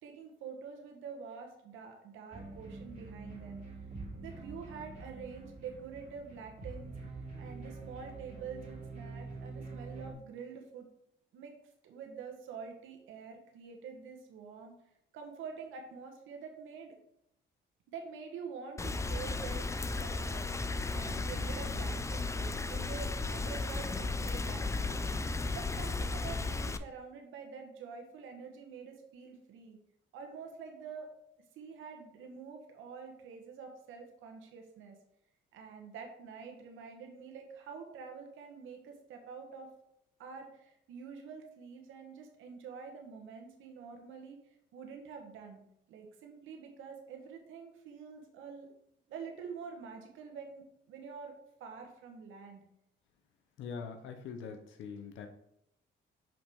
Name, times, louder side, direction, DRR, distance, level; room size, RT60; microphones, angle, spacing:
voice 1, 0.0-3.8 4.2-6.9 7.4-10.9 11.3-11.5 11.8-14.7 15.1-16.9 17.9-19.7 20.0-20.5 20.9-25.0 25.5-29.8 30.1-31.1 31.5-35.0 35.5-39.7 40.2-44.4 44.7-45.6 45.9-48.7 49.1-51.3 51.6-52.7, right 6 dB, 85° right, 3 dB, 1.1 m, -47 dB
sound 1, 2.3-10.1, right 3 dB, 35° right, 2.5 m, -46 dB
Rain, 18.8-26.8, left 3 dB, 15° left, 0.4 m, -35 dB
voice 2, 53.6-55.3, left 6 dB, 80° left, 6 dB, 0.8 m, -43 dB
5.7 x 5.3 x 3.5 m, 0.77 s
cardioid pair, 90°, 20 cm